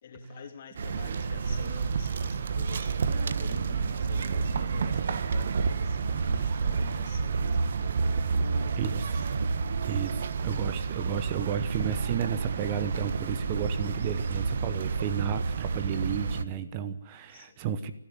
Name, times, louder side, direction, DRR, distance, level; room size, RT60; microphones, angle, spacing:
voice 1, 0.0-7.6 8.2-9.3 17.3-17.7, left 6 dB, 40° left, 5 dB, 3.3 m, -48 dB
sound 1, 0.7-16.4, right 5 dB, 45° right, 1.2 m, -29 dB
voice 2, 8.8-9.2 9.9-17.9, right 8 dB, 25° right, 13 dB, 1.0 m, -32 dB
29.0 x 11.5 x 9.5 m, 0.82 s
figure-of-eight pair, 145°, 0 cm